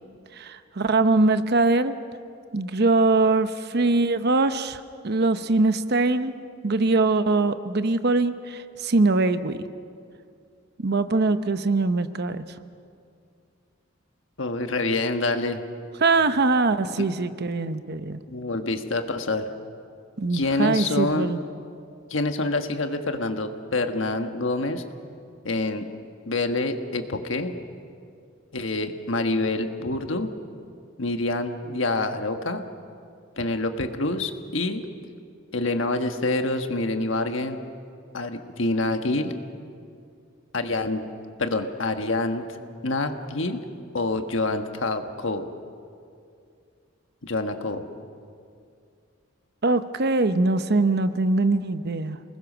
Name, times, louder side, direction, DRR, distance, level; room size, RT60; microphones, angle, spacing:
voice 1, 0.4-1.9 2.5-6.3 6.6-9.6 10.8-12.4 16.0-18.2 20.2-21.4 49.6-52.2, right 3 dB, 55° right, 11 dB, 0.8 m, -22 dB
voice 2, 14.4-15.6 17.0-17.1 18.3-19.5 20.3-21.3 22.1-24.8 25.4-25.8 26.3-27.5 28.5-30.3 31.0-32.6 33.4-34.8 35.5-37.6 38.1-39.3 40.5-41.1 41.4-42.4 42.8-43.6 43.9-45.5 47.2-47.8, left 2 dB, 70° left, 6 dB, 1.5 m, -26 dB
28.0 x 20.5 x 6.2 m, 2.4 s
head